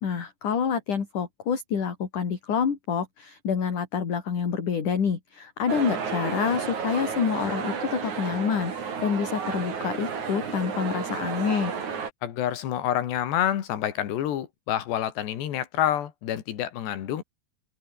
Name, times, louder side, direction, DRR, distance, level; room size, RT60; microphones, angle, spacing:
voice 1, 0.0-11.8, left 7 dB, 50° left, 4.7 m, -27 dB
sound 1, 5.7-12.1, right 6 dB, 45° right, 4.5 m, -32 dB
voice 2, 12.2-17.2, left 11 dB, 75° left, 4.3 m, -28 dB
open air
omnidirectional pair, 4.9 m